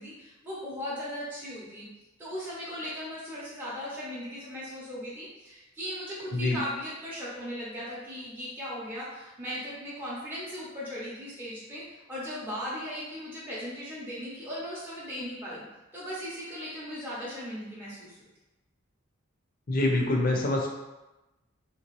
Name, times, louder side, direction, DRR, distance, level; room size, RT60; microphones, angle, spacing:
voice 1, 0.0-1.9 2.2-15.6 15.9-18.3, equal, 10° right, -9 dB, 0.6 m, -38 dB
voice 2, 19.7-20.7, left 2 dB, 45° left, 0 dB, 0.5 m, -25 dB
3.1 x 2.9 x 3.0 m, 1.0 s
head